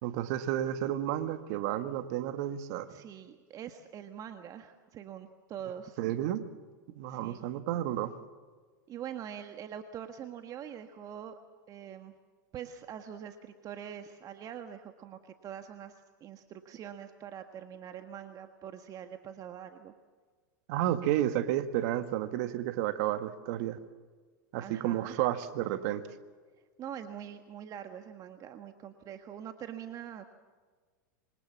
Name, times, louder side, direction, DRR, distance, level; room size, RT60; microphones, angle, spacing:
voice 1, 0.0-2.9 6.0-6.4 7.0-8.1 20.7-23.8 24.5-26.1, right 12 dB, 55° right, 9 dB, 1.9 m, -31 dB
voice 2, 2.9-6.0 7.1-7.4 8.9-11.3 11.7-12.1 12.5-19.9 24.6-25.2 26.8-30.2, right 9 dB, 35° right, 7 dB, 1.6 m, -44 dB
26.5 x 24.5 x 7.4 m, 1.5 s
hypercardioid pair, 105°, 11 cm